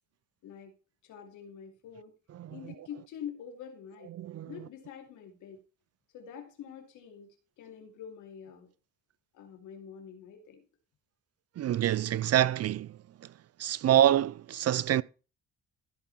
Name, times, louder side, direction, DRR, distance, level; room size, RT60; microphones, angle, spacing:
voice 1, 0.4-0.7 1.0-2.1 2.5-4.1 4.5-5.6 6.1-8.7 9.3-10.6, left 8 dB, 85° left, 2.8 m, -46 dB
voice 2, 2.3-2.7 4.1-4.5 11.6-13.3 13.6-15.0, right 11 dB, 55° right, 0.6 m, -27 dB
15.0 x 5.4 x 4.2 m
cardioid pair, 90°, 30 cm